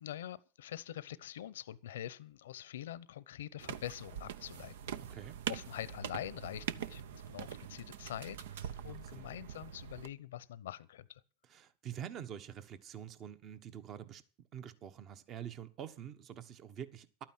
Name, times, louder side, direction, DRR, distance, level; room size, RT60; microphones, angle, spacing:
voice 1, 0.0-11.2, left 12 dB, 85° left, 0.8 m, -45 dB
sound 1, 3.6-10.1, right 9 dB, 80° right, 0.7 m, -43 dB
voice 2, 8.7-9.3 11.5-14.2 14.5-17.2, right 9 dB, 40° right, 1.3 m, -46 dB
12.0 x 9.0 x 7.7 m
hypercardioid pair, 110°, 0 cm